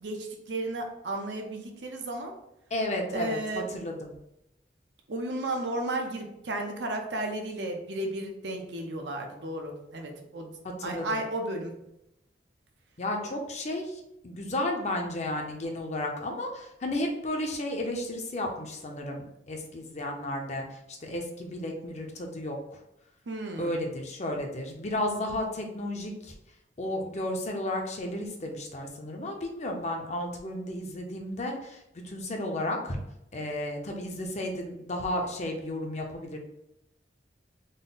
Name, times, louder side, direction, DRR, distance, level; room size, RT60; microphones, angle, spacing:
voice 1, 0.0-2.3 3.1-3.7 5.1-10.6 10.8-11.7 23.3-23.7, right 2 dB, 80° right, 2 dB, 0.7 m, -33 dB
voice 2, 2.7-4.1 10.8-11.1 13.0-22.8 23.6-26.3 26.8-33.0 33.3-36.4, left 1 dB, 40° left, 2 dB, 0.6 m, -33 dB
3.9 x 2.1 x 3.8 m, 0.84 s
head